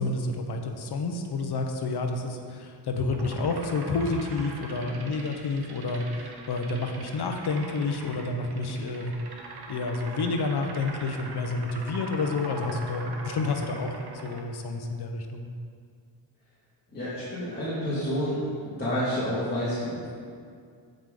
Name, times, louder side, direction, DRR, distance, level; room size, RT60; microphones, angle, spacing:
voice 1, 0.0-9.1 9.7-13.9 14.2-15.5, left 3 dB, 55° left, 4 dB, 1.0 m, -29 dB
sound 1, 3.1-14.4, right 3 dB, 55° right, 1.1 m, -43 dB
voice 2, 16.9-18.4 18.8-20.1, equal, 20° left, -12 dB, 2.1 m, -29 dB
15.0 x 5.3 x 3.8 m, 2.2 s
wide cardioid pair, 160°, 46 cm